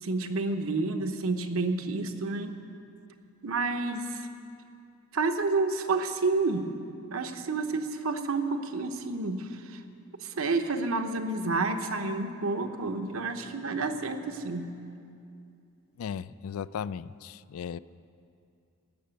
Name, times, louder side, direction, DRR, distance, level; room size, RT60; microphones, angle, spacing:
voice 1, 0.0-2.6 3.4-4.2 5.1-6.7 7.1-9.8 10.2-14.7, right 3 dB, 70° right, 6 dB, 0.9 m, -29 dB
voice 2, 16.0-17.8, left 7 dB, 75° left, 18 dB, 0.3 m, -36 dB
16.5 x 6.7 x 9.1 m, 2.5 s
head